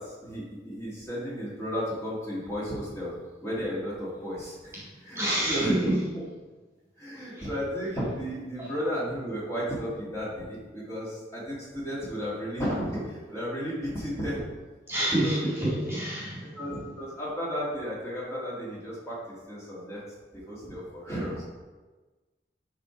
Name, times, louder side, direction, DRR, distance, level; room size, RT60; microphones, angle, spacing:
voice 1, 0.0-6.2 7.0-14.4 15.1-15.8 16.6-20.0 20.3-21.5, equal, 15° left, -8 dB, 2.1 m, -34 dB
voice 2, 5.2-5.9 14.9-16.5, right 1 dB, 15° right, -7 dB, 1.9 m, -27 dB
10.5 x 3.7 x 4.5 m, 1.3 s
head